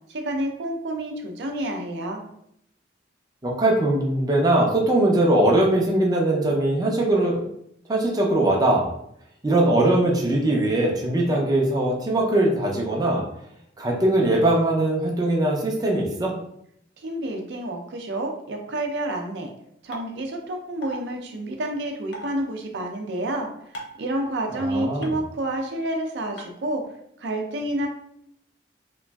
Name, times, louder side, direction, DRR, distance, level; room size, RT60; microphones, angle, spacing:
voice 1, 0.1-2.3 17.0-19.5 19.8-23.5 24.0-26.8 27.2-27.9, right 1 dB, 75° right, 3 dB, 0.5 m, -29 dB
voice 2, 3.4-7.4 7.9-8.9 9.4-13.2 13.8-16.3 24.5-25.1, right 1 dB, 20° right, -2 dB, 0.4 m, -21 dB
sound 1, 19.9-20.0 20.8-21.0 22.1-22.3 23.7-24.0 25.0-25.1 26.4-26.5, equal, 85° left, 0.6 m, -35 dB
2.9 x 2.5 x 2.2 m, 0.73 s
head